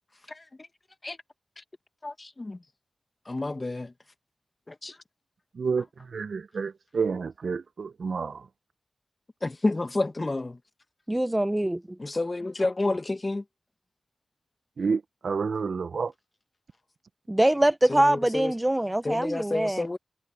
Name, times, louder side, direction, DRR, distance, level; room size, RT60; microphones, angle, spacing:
voice 1, 2.0-2.6 3.3-3.9 4.7-4.9 9.4-10.6 12.0-13.4 17.9-18.5 19.0-20.0, left 2 dB, 35° left, 1.4 m, -29 dB
voice 2, 5.5-8.5 14.8-16.1, right 5 dB, 75° right, 0.9 m, -29 dB
voice 3, 11.1-12.0 17.3-19.9, right 1 dB, 15° right, 0.8 m, -24 dB
cardioid pair, 45°, 0 cm